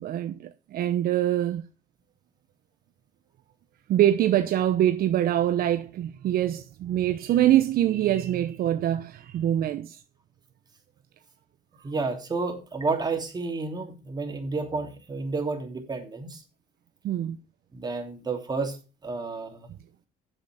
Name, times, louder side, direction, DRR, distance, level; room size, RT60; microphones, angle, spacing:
voice 1, 0.0-1.7 3.9-10.0 17.0-17.4, right 12 dB, 60° right, 0.8 m, -24 dB
voice 2, 11.8-16.4 17.7-18.8 19.0-19.7, right 3 dB, 25° right, 2.9 m, -31 dB
7.9 x 7.7 x 6.0 m
cardioid pair, 110°, 17 cm